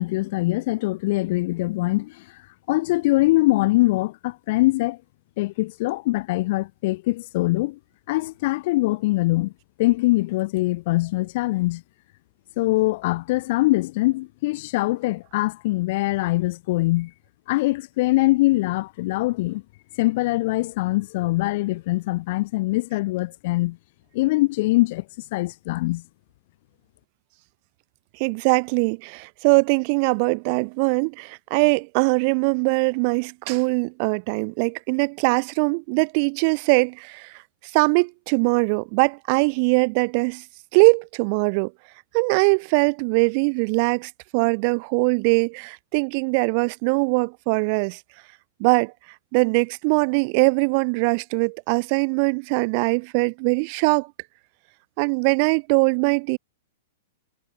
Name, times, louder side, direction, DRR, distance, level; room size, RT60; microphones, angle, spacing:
voice 1, 0.0-2.2 2.7-5.0 5.4-7.8 8.1-9.5 9.8-11.8 12.6-17.1 17.5-19.6 20.0-23.8 24.1-25.0 25.3-26.0, left 20 dB, 55° left, 0.3 m, -23 dB
voice 2, 28.2-37.3 37.7-40.4 40.7-41.7 42.1-48.0 48.6-48.9 49.3-54.1 55.0-56.4, right 35 dB, 50° right, 1.5 m, -21 dB
hypercardioid pair, 115°, 0 cm